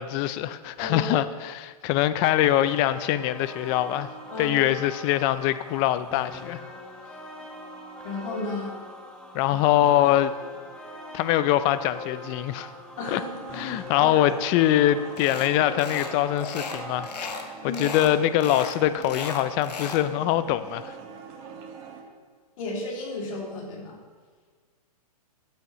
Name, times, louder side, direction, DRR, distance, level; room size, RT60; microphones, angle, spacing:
voice 1, 0.0-4.1 4.4-6.6 9.3-10.3 11.1-12.7 13.1-13.2 13.5-17.1 17.6-20.9, left 12 dB, 25° left, 14 dB, 0.3 m, -23 dB
voice 2, 0.8-1.1 4.3-4.6 8.0-8.8 13.0-13.6 13.9-14.2 17.6-17.9 22.6-24.0, left 2 dB, 55° left, -2 dB, 2.5 m, -33 dB
sound 1, 2.4-17.2, left 2 dB, 5° left, 1.0 m, -42 dB
sound 2, 13.0-22.0, right 6 dB, 40° right, 1.6 m, -43 dB
sound 3, 15.2-15.5 15.8-16.1 16.4-17.5 17.7-18.1 18.4-20.0, left 5 dB, 85° left, 1.4 m, -35 dB
14.5 x 8.5 x 3.0 m, 1.5 s
hypercardioid pair, 140°, 20 cm